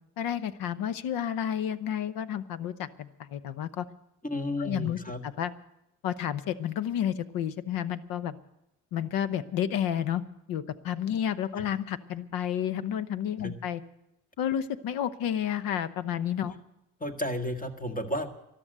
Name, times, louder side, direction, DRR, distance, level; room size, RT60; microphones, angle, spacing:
voice 1, 0.2-3.9 4.6-5.5 6.0-8.4 8.9-10.2 10.5-13.8 14.4-16.5, left 9 dB, 70° left, 15 dB, 0.9 m, -31 dB
voice 2, 4.2-5.2 13.4-13.5 16.5-16.6 17.0-18.3, left 1 dB, 25° left, 6 dB, 1.8 m, -32 dB
13.5 x 12.0 x 7.9 m, 0.85 s
supercardioid pair, 80°, 36 cm